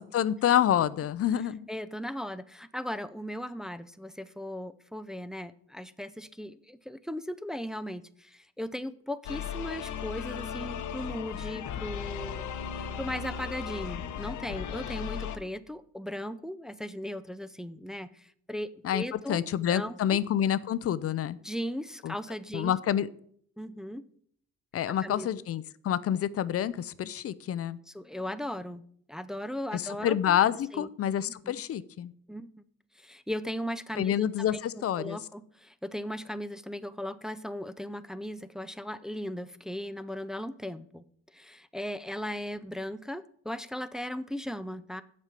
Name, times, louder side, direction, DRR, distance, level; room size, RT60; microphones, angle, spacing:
voice 1, 0.0-1.7 18.8-21.4 22.0-22.1 22.5-23.1 24.7-27.8 29.7-32.1 34.0-35.2, left 10 dB, 50° left, 17 dB, 0.5 m, -28 dB
voice 2, 1.7-12.5 12.7-20.2 21.4-22.7 23.6-24.0 24.9-25.4 27.9-30.4 30.7-30.9 31.3-31.6 32.3-32.5 33.0-41.0 41.3-45.0, equal, ahead, 12 dB, 0.4 m, -37 dB
sound 1, 9.2-15.4, left 8 dB, 75° left, 0.9 m, -36 dB
7.4 x 5.4 x 6.6 m, 0.62 s
cardioid pair, 90°, 30 cm